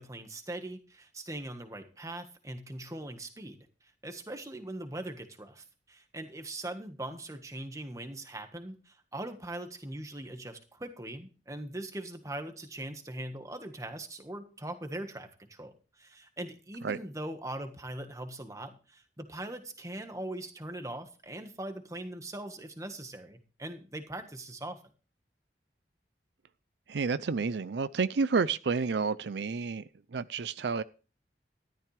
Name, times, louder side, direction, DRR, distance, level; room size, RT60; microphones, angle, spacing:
voice 1, 0.0-24.8, right 1 dB, 20° right, 7 dB, 1.5 m, -41 dB
voice 2, 26.9-30.8, right 4 dB, 75° right, 15 dB, 0.5 m, -30 dB
13.5 x 12.5 x 3.3 m, 0.35 s
head